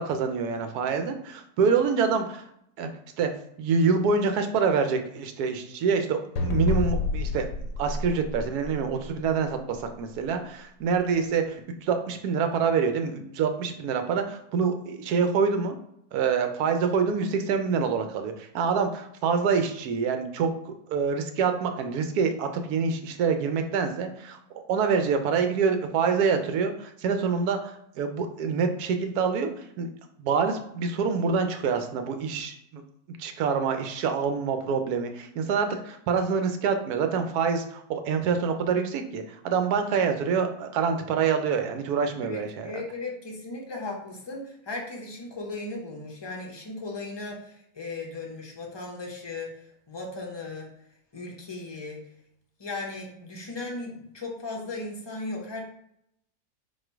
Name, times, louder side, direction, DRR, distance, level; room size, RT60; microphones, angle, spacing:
voice 1, 0.0-2.4 2.8-2.9 3.2-3.3 3.6-7.5 7.8-15.8 16.1-24.4 24.7-29.9 30.2-32.8 33.2-42.7, right 5 dB, 75° right, 7 dB, 1.1 m, -26 dB
sound 1, 6.4-9.1, left 2 dB, 70° left, 0.9 m, -28 dB
voice 2, 42.2-50.7 51.1-52.0 52.6-55.6, left 2 dB, 35° left, -1 dB, 0.4 m, -37 dB
4.3 x 2.5 x 4.5 m, 0.74 s
omnidirectional pair, 1.7 m